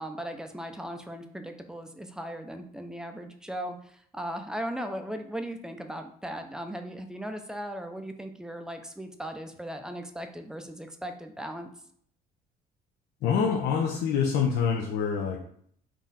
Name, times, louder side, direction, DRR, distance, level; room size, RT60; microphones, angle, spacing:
voice 1, 0.0-11.7, right 1 dB, 5° right, 6 dB, 0.4 m, -37 dB
voice 2, 13.2-15.4, left 6 dB, 75° left, -1 dB, 0.5 m, -26 dB
3.8 x 2.4 x 4.0 m, 0.62 s
cardioid pair, 110°, 17 cm